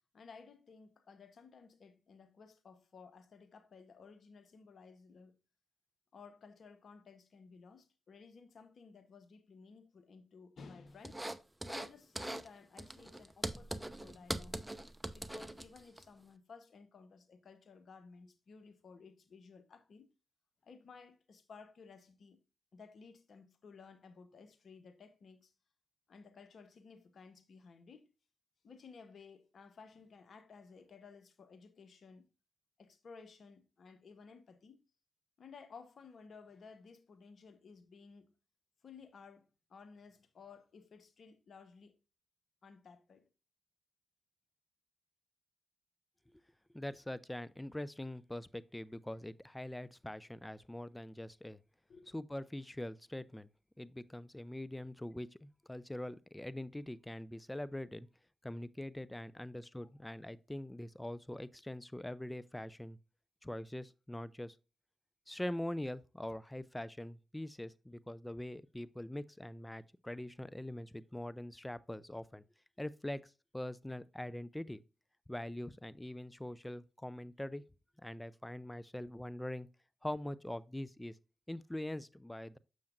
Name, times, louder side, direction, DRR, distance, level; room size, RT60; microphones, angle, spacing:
voice 1, 0.1-5.4 6.1-11.2 11.6-14.6 15.1-20.1 20.6-22.4 22.7-25.5 26.1-28.1 28.6-32.3 32.8-34.8 35.4-38.3 38.8-42.0 42.6-43.3 51.9-52.2 59.8-60.1, left 5 dB, 65° left, 1.0 m, -56 dB
sound 1, 11.0-11.9 12.2-12.5 12.8-16.0, right 1 dB, 10° right, 0.8 m, -41 dB
voice 2, 46.7-51.6 52.1-53.5 53.8-58.1 58.4-63.0 63.4-64.6 65.3-72.4 72.8-74.8 75.3-77.6 78.0-79.7 80.0-81.2 81.5-82.6, left 1 dB, 15° left, 0.5 m, -43 dB
7.0 x 6.5 x 2.5 m
supercardioid pair, 40°, 0 cm